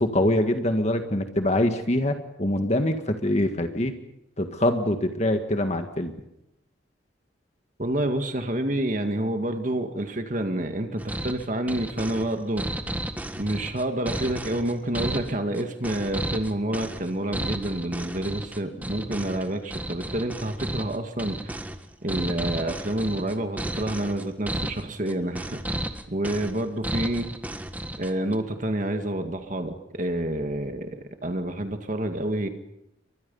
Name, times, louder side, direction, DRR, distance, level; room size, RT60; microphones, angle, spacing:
voice 1, 0.0-3.9 4.4-6.1, left 1 dB, 35° left, 6 dB, 1.8 m, -24 dB
voice 2, 7.8-12.8 13.4-21.5 22.0-25.6 26.1-27.3 28.0-30.9 31.2-32.5, right 1 dB, 45° right, 6 dB, 2.1 m, -28 dB
sound 1, 11.0-28.4, right 1 dB, 10° right, 1.7 m, -33 dB
30.0 x 24.5 x 5.6 m, 0.85 s
head